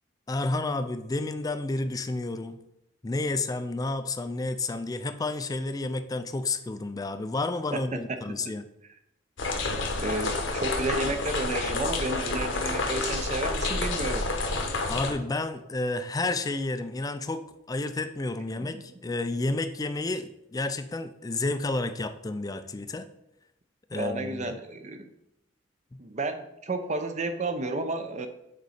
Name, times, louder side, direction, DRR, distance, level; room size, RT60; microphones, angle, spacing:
voice 1, 0.3-2.6 3.0-8.7 14.9-23.1 23.9-24.6 25.9-26.0, left 2 dB, 20° left, 10 dB, 0.4 m, -31 dB
voice 2, 7.7-8.2 10.0-14.3 18.6-19.0 23.9-25.1 26.0-28.3, right 2 dB, 35° right, 8 dB, 0.6 m, -32 dB
sound 1, 9.4-15.1, left 3 dB, 70° left, 1.0 m, -29 dB
6.6 x 4.0 x 4.9 m, 0.83 s
head